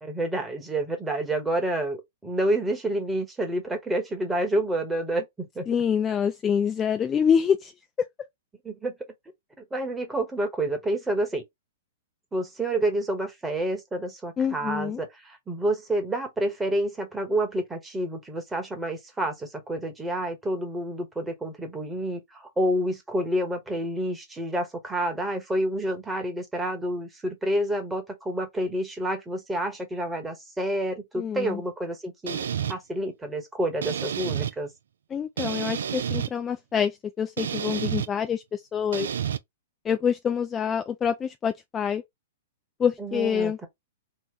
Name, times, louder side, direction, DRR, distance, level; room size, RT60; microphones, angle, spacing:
voice 1, 0.0-5.3 5.5-5.7 8.6-8.9 9.6-11.4 12.3-34.7 43.0-43.7, right 1 dB, 10° right, 1.1 m, -29 dB
voice 2, 5.7-7.7 14.4-15.0 31.2-31.6 35.1-39.1 39.8-42.0 42.8-43.6, left 7 dB, 20° left, 0.3 m, -26 dB
sound 1, 32.3-32.7 33.8-34.5 35.4-36.3 37.4-38.1 38.9-39.4, right 8 dB, 75° right, 0.4 m, -29 dB
3.0 x 2.1 x 3.7 m
hypercardioid pair, 125°, 0 cm